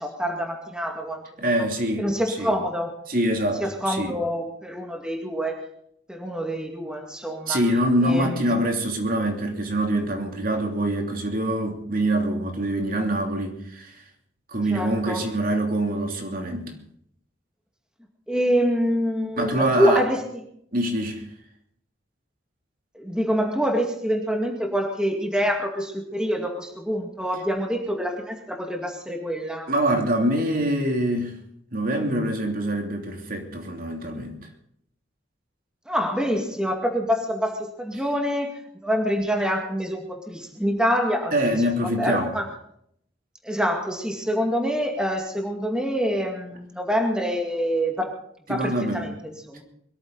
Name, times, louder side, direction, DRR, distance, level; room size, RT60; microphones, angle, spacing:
voice 1, 0.0-1.5 2.0-2.9 3.6-5.6 6.1-7.6 8.0-8.4 14.7-15.2 18.3-20.2 22.9-29.7 35.9-38.5 38.8-41.4 41.8-42.4 43.4-48.1 48.5-49.6, equal, 5° right, 2 dB, 2.2 m, -26 dB
voice 2, 1.4-2.5 3.1-4.2 7.5-14.0 14.5-16.7 19.4-20.0 20.7-21.2 29.7-31.4 31.7-34.4 41.3-42.3 48.5-49.1, right 1 dB, 50° right, 3 dB, 3.0 m, -25 dB
23.0 x 13.5 x 4.1 m, 0.69 s
head